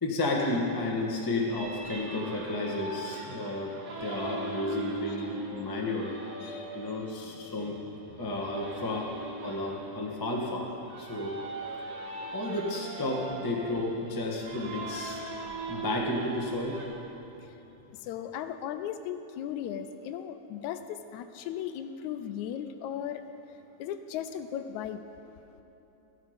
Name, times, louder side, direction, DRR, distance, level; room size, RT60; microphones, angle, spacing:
voice 1, 0.0-6.1 6.7-7.7 8.2-9.2 9.4-11.4 12.3-15.2 15.7-16.8, left 2 dB, 20° left, -1 dB, 0.5 m, -32 dB
sound 1, 1.4-16.9, right 3 dB, 55° right, 2.1 m, -40 dB
voice 2, 18.0-23.2 23.8-25.0, left 9 dB, 80° left, 9 dB, 1.9 m, -37 dB
14.5 x 12.0 x 5.2 m, 3.0 s
omnidirectional pair, 3.4 m